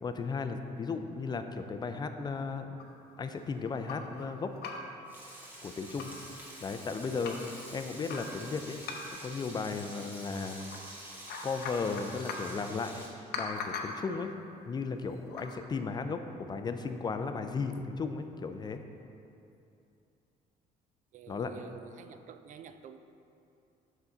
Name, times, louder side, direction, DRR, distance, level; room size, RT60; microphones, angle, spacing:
voice 1, 0.0-2.8 3.2-4.5 5.6-6.1 6.6-8.8 9.1-10.7 11.4-14.3 14.7-18.8 21.3-21.5, left 4 dB, 25° left, 8 dB, 0.4 m, -35 dB
sound 1, 2.8-4.2 4.5-5.0 5.4-5.5 5.8-6.3 6.7-7.5 8.1-9.3 10.3-10.8 11.1-12.6 13.3-14.1 15.2-15.5, left 4 dB, 70° left, 0.7 m, -41 dB
Frying (food), 5.1-13.1, right 1 dB, 10° right, 1.3 m, -48 dB
voice 2, 21.1-23.0, right 8 dB, 50° right, 10 dB, 0.4 m, -49 dB
5.8 x 5.5 x 3.8 m, 2.7 s
cardioid pair, 110°, 17 cm